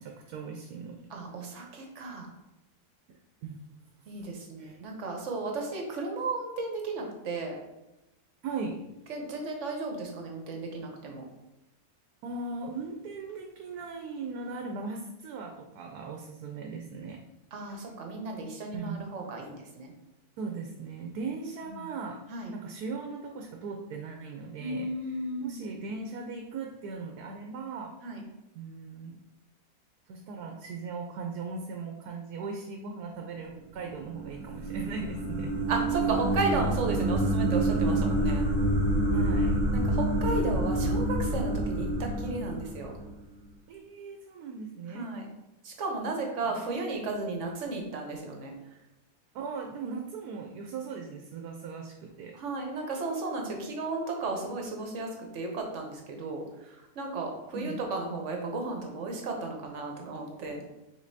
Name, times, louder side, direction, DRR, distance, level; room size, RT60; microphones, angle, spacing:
voice 1, 0.0-1.0 3.4-3.6 4.6-4.8 8.4-8.8 12.2-17.2 17.6-17.8 18.7-19.0 20.4-22.2 22.5-24.9 25.4-27.9 28.5-29.2 30.1-35.5 39.1-39.6 43.7-45.1 46.4-46.6 49.3-52.3 57.5-57.8, right 4 dB, 85° right, 2 dB, 1.1 m, -38 dB
voice 2, 1.1-2.3 4.1-7.5 9.1-11.2 17.5-19.9 21.6-21.8 22.3-22.5 24.6-25.6 28.0-28.2 35.7-38.5 39.7-42.9 44.9-45.3 45.6-48.5 52.3-60.6, right 3 dB, 55° right, 2 dB, 1.1 m, -34 dB
sound 1, 33.9-43.2, right 1 dB, 35° right, 1.1 m, -27 dB
5.1 x 3.7 x 2.7 m, 0.94 s
omnidirectional pair, 1.6 m